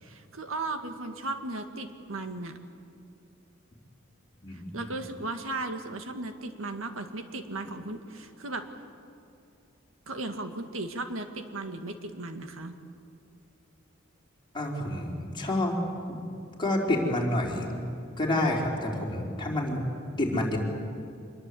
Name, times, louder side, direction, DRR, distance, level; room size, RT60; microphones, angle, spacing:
voice 1, 0.0-2.6 4.5-8.7 10.1-12.7, right 2 dB, 90° right, 7 dB, 1.9 m, -36 dB
voice 2, 4.4-4.9 14.5-15.8 16.1-16.2 16.6-17.7 18.2-19.9 20.2-20.6, left 1 dB, 25° left, -2 dB, 4.4 m, -28 dB
26.0 x 21.5 x 8.5 m, 2.5 s
head